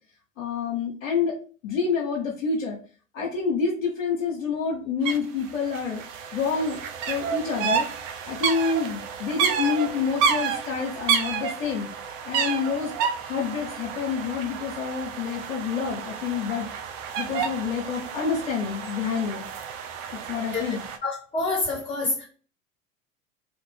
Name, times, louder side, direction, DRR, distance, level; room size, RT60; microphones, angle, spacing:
voice 1, 0.4-1.3 1.6-2.8 3.1-6.0 6.3-6.8 7.1-7.9 8.3-11.9 12.2-12.9 13.2-16.7 17.2-19.5 20.3-20.8, left 5 dB, 75° left, 1.0 m, -28 dB
sound 1, 5.0-5.2 5.4-21.0, right 7 dB, 45° right, 0.6 m, -30 dB
voice 2, 21.0-22.2, left 3 dB, 15° left, 1.4 m, -27 dB
2.8 x 2.5 x 3.4 m
figure-of-eight pair, 80°, 39 cm